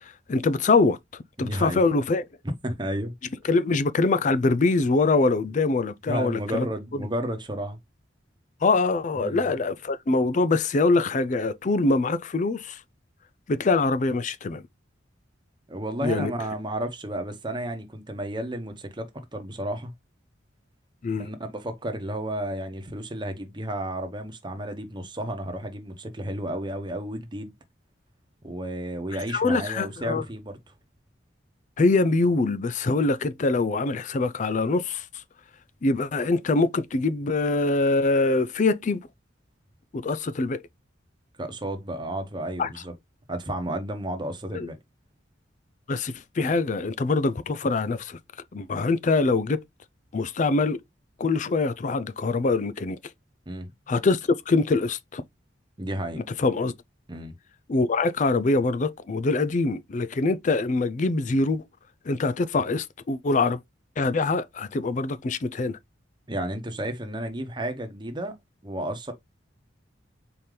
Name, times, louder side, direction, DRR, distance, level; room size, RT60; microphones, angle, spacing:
voice 1, 0.3-1.0 1.4-2.2 3.5-6.7 6.9-7.0 8.6-12.8 13.5-14.6 16.0-16.3 21.0-21.3 29.3-30.2 31.8-35.0 35.8-39.0 39.9-40.6 42.6-42.7 44.5-44.7 45.9-48.2 48.5-49.6 50.1-50.8 51.2-53.0 53.9-54.2 54.5-55.2 56.4-56.7 57.7-61.6 62.1-63.6 64.0-65.8, left 3 dB, 40° left, 0.4 m, -24 dB
voice 2, 1.4-1.8 2.6-3.1 6.1-7.8 9.1-9.5 15.7-19.9 21.2-27.5 28.4-30.7 41.4-42.9 43.3-44.8 53.5-53.7 55.8-56.2 57.1-57.3 66.3-68.3 68.6-69.1, right 1 dB, 25° right, 1.0 m, -32 dB
4.3 x 3.7 x 3.2 m
head